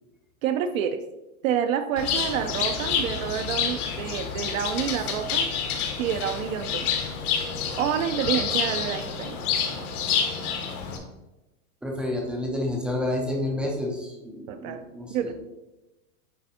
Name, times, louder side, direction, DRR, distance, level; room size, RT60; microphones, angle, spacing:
voice 1, 0.4-1.0 1.4-5.5 6.0-6.9 7.7-9.4 14.5-14.8 15.1-15.3, right 9 dB, 65° right, 7 dB, 0.6 m, -28 dB
Bird, 2.0-11.0, left 6 dB, 80° left, 1.7 m, -28 dB
voice 2, 11.8-15.3, left 1 dB, 5° right, 0 dB, 0.4 m, -29 dB
9.4 x 3.5 x 4.2 m, 1.0 s
supercardioid pair, 150°, 44 cm